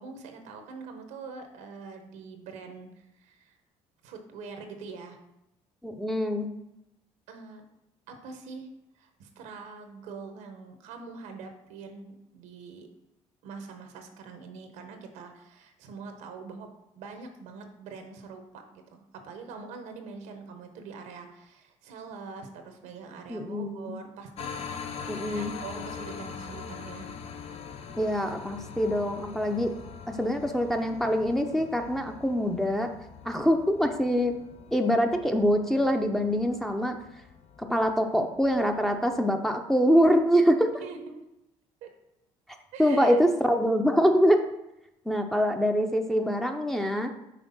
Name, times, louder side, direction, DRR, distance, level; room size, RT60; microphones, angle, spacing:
voice 1, 0.0-3.6 4.0-5.2 7.3-7.6 8.1-8.7 9.0-12.9 13.4-16.7 16.9-27.1 40.8-41.2 41.8-41.9 42.7-43.2, right 4 dB, 85° right, 5 dB, 1.0 m, -44 dB
voice 2, 5.8-6.5 23.3-23.9 25.1-25.5 28.0-29.7 30.1-32.9 33.2-34.3 34.7-37.0 37.6-40.7 42.8-44.4 45.1-47.1, equal, 5° left, 3 dB, 0.7 m, -24 dB
sound 1, 24.4-39.2, left 6 dB, 55° left, 0.7 m, -43 dB
5.9 x 3.3 x 5.5 m, 0.89 s
supercardioid pair, 80°, 12 cm